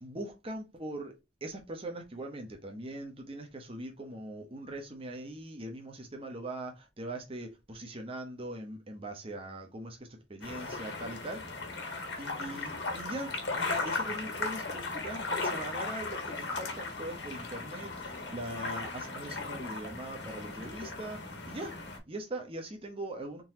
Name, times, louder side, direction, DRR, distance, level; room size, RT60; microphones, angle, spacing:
voice 1, 0.0-1.2 1.4-11.6 12.2-21.8 22.1-23.4, right 1 dB, 35° right, 0.9 m, -41 dB
sound 1, 10.4-22.0, left 3 dB, 75° left, 1.5 m, -37 dB
3.9 x 3.7 x 2.8 m
head